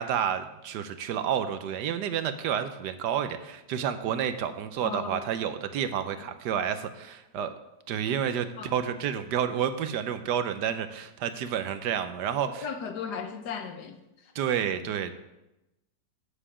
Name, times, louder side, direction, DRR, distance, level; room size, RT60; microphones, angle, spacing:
voice 1, 0.0-7.5 7.9-12.6 14.3-15.1, right 8 dB, 75° right, 10 dB, 1.2 m, -30 dB
voice 2, 4.8-5.3 6.2-6.3 8.6-8.7 12.6-14.3 14.8-14.9, left 6 dB, 70° left, 6 dB, 1.5 m, -37 dB
8.8 x 7.4 x 4.9 m, 0.93 s
omnidirectional pair, 1.9 m